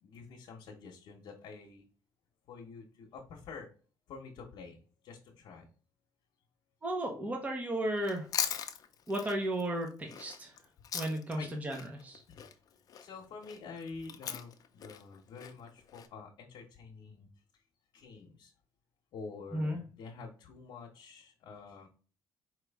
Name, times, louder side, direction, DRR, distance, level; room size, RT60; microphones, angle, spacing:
voice 1, 0.0-1.9 2.5-3.7 4.1-4.8 5.0-5.7 11.4-11.6 12.3-12.4 13.0-17.3 17.9-18.5 19.1-21.9, left 4 dB, 75° left, 0 dB, 0.9 m, -48 dB
voice 2, 6.8-8.3 9.1-10.5 10.9-12.2 19.5-19.8, right 1 dB, 20° right, 2 dB, 0.9 m, -34 dB
Chewing mastication, 8.0-11.4 11.7-16.1, left 8 dB, 50° left, 0.6 m, -40 dB
4.7 x 3.0 x 3.4 m, 0.39 s
cardioid pair, 125°, 8 cm